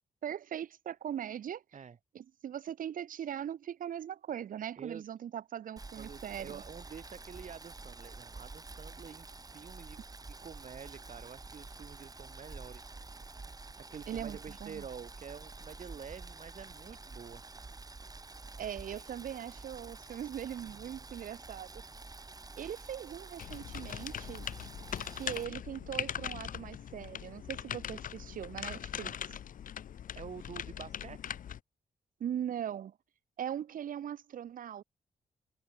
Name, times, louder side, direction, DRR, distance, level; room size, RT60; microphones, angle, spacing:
voice 1, 0.2-1.6 2.1-6.6 14.1-14.8 18.6-21.7 22.5-24.5 25.1-29.1 32.2-33.0 33.4-34.8, right 9 dB, 75° right, 1.2 m, -40 dB
Boiling, 5.8-25.4, right 3 dB, 25° right, 1.7 m, -48 dB
voice 2, 6.0-10.0 10.4-12.9 13.8-17.4 30.1-31.4, right 6 dB, 55° right, 1.6 m, -48 dB
sound 1, 23.4-31.6, left 9 dB, 75° left, 1.2 m, -41 dB
cardioid pair, 65°, 14 cm